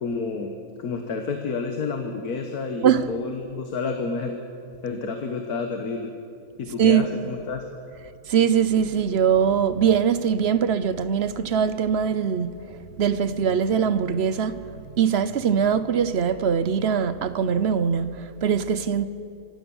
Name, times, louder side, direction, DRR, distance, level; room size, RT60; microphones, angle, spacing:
voice 1, 0.0-0.5 0.8-4.3 4.8-6.1 6.6-7.6, left 4 dB, 75° left, 1.8 m, -29 dB
voice 2, 2.8-3.1 6.8-7.1 8.3-14.6 15.0-19.1, right 7 dB, 50° right, 0.9 m, -22 dB
25.0 x 16.5 x 7.2 m
omnidirectional pair, 1.6 m